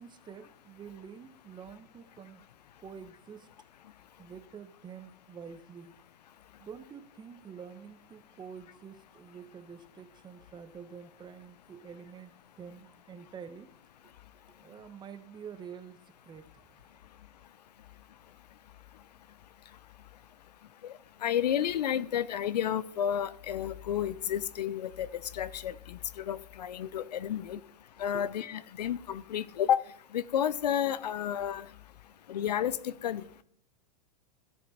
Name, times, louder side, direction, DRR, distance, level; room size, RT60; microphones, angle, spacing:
voice 1, 0.0-2.5 2.8-3.5 4.2-5.9 6.6-13.8 14.6-16.8 27.6-27.7 28.1-28.2, right 7 dB, 20° right, 1.1 m, -48 dB
voice 2, 21.2-25.1 25.3-27.6 28.0-29.8 30.1-31.7 32.3-33.2, left 10 dB, 75° left, 0.7 m, -31 dB
15.5 x 6.7 x 4.3 m
hypercardioid pair, 110°, 21 cm